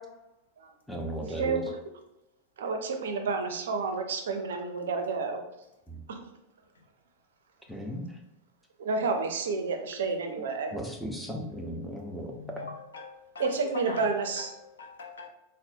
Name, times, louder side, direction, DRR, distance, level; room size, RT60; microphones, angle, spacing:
voice 1, 0.9-1.6 5.9-6.0 7.7-8.2 10.7-12.6, right 1 dB, ahead, 0 dB, 0.6 m, -36 dB
voice 2, 2.6-5.4 6.1-6.2 8.8-10.7 13.4-14.5, right 4 dB, 60° right, 5 dB, 0.4 m, -30 dB
voice 3, 12.3-15.3, left 4 dB, 70° left, 2 dB, 0.6 m, -41 dB
3.9 x 2.0 x 2.7 m, 0.91 s
figure-of-eight pair, 90°, 0 cm